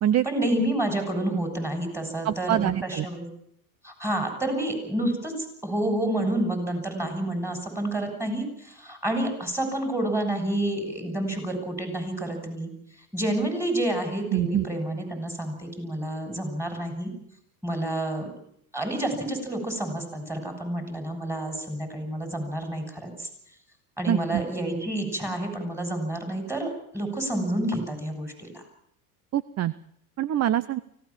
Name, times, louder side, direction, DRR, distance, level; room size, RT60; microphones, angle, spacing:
voice 1, 0.2-3.2 3.8-5.3 5.6-12.7 13.1-17.1 17.6-18.3 18.7-23.3 24.0-26.7 26.9-28.6, right 1 dB, 5° right, 5 dB, 7.5 m, -29 dB
voice 2, 2.2-3.1 14.3-14.7 24.1-24.4 29.3-29.7 30.2-30.8, right 12 dB, 35° right, 18 dB, 0.8 m, -24 dB
24.5 x 17.0 x 7.5 m, 0.70 s
supercardioid pair, 105°, 47 cm